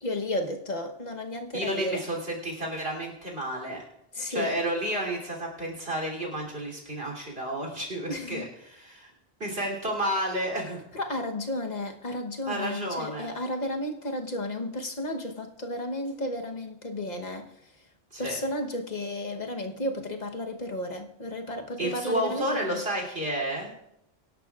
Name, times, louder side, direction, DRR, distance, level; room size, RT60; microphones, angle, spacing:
voice 1, 0.0-2.0 4.1-4.6 8.1-8.5 10.9-17.5 18.2-22.8, left 1 dB, 45° left, 1.2 m, -33 dB
voice 2, 1.5-3.8 4.3-9.1 9.4-10.8 12.5-13.3 18.1-18.4 21.8-23.7, right 1 dB, 70° right, 3.4 m, -31 dB
24.0 x 11.5 x 2.4 m
omnidirectional pair, 1.0 m